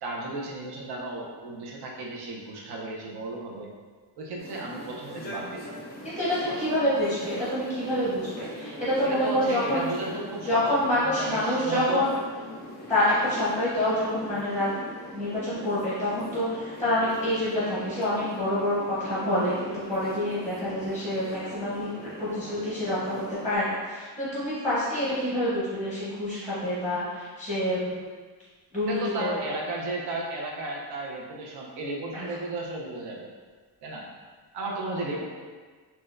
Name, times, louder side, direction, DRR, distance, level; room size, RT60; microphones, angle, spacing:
voice 1, 0.0-3.7 4.2-5.8 6.4-6.5 9.0-12.1 28.8-33.3 33.8-34.0 34.5-35.2, right 2 dB, 70° right, -2 dB, 0.7 m, -34 dB
sound 1, 4.4-23.6, left 1 dB, 25° left, 0.4 m, -41 dB
voice 2, 6.0-9.8 10.4-12.1 12.9-14.7 15.1-28.0 28.7-29.5 32.1-32.2, left 1 dB, 5° right, -10 dB, 0.7 m, -27 dB
4.2 x 2.2 x 2.5 m, 1.5 s
cardioid pair, 170°, 42 cm